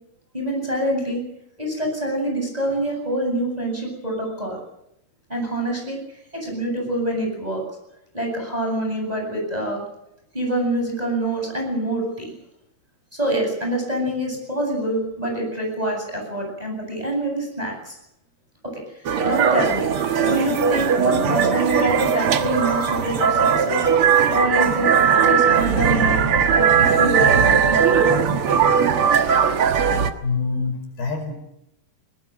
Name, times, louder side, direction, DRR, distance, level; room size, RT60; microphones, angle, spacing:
voice 1, 0.3-1.2 1.6-4.6 5.3-6.0 6.3-7.6 8.1-9.8 10.3-12.3 13.1-18.0 18.7-19.9 20.2-23.9 24.3-26.2 26.5-28.0, right 1 dB, 10° right, 1 dB, 8.0 m, -25 dB
sound 1, 19.0-30.1, right 7 dB, 65° right, 1.3 m, -18 dB
voice 2, 30.2-31.3, left 4 dB, 65° left, 4 dB, 7.1 m, -25 dB
22.0 x 20.5 x 7.7 m, 0.81 s
omnidirectional pair, 4.7 m